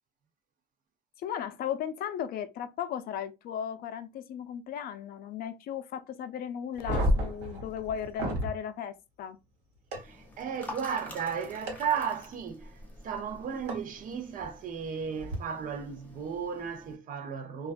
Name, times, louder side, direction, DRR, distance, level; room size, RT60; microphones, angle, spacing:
voice 1, 1.2-9.4, left 9 dB, 60° left, 0.4 m, -36 dB
sound 1, 6.7-8.5 9.9-10.0 11.7-11.8 13.7-13.8 15.2-15.3, equal, 80° right, 1.1 m, -29 dB
sound 2, 9.9-17.0, left 2 dB, 10° left, 0.7 m, -48 dB
voice 2, 10.0-12.8 13.0-17.7, right 7 dB, 55° right, 0.6 m, -34 dB
2.4 x 2.1 x 2.5 m
cardioid pair, 110°, 17 cm